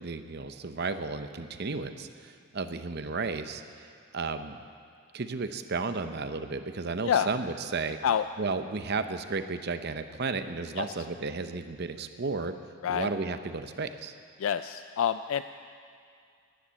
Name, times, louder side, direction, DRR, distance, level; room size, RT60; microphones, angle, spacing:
voice 1, 0.0-3.9 4.1-4.6 5.1-8.0 8.4-12.5 12.9-14.1, right 4 dB, 50° right, 9 dB, 0.7 m, -33 dB
voice 2, 14.4-15.4, left 8 dB, 65° left, 11 dB, 0.3 m, -27 dB
13.5 x 10.0 x 8.3 m, 2.3 s
head